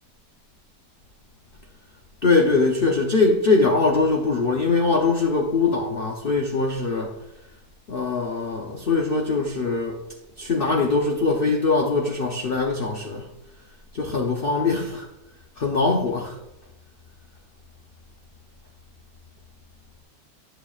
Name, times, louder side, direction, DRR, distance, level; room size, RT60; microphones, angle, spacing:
voice 1, 2.2-7.1 7.9-10.0 10.4-13.3 13.9-15.1 15.6-16.4, left 3 dB, 55° left, 0.6 m, -22 dB
11.5 x 6.6 x 2.4 m
omnidirectional pair, 1.8 m